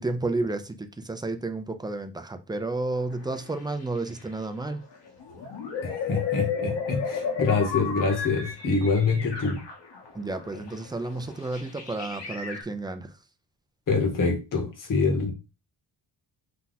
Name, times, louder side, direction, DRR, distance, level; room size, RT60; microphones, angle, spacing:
voice 1, 0.0-4.8 10.1-13.1, right 2 dB, 10° right, 0.3 m, -31 dB
sound 1, 3.0-4.6 4.9-12.6, left 6 dB, 75° left, 1.8 m, -34 dB
voice 2, 5.8-9.6 13.9-15.3, left 4 dB, 50° left, 1.3 m, -25 dB
5.6 x 2.4 x 3.9 m
wide cardioid pair, 160°, 43 cm